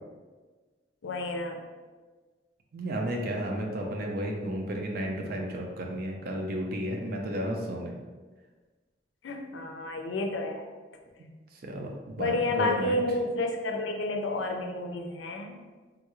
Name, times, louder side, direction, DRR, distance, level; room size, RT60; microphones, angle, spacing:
voice 1, 1.0-1.6 9.2-10.6 12.2-15.6, left 2 dB, 85° left, 4 dB, 0.4 m, -30 dB
voice 2, 2.7-7.9 11.6-13.0, right 1 dB, 55° right, 1 dB, 0.5 m, -33 dB
3.6 x 2.3 x 3.0 m, 1.3 s
head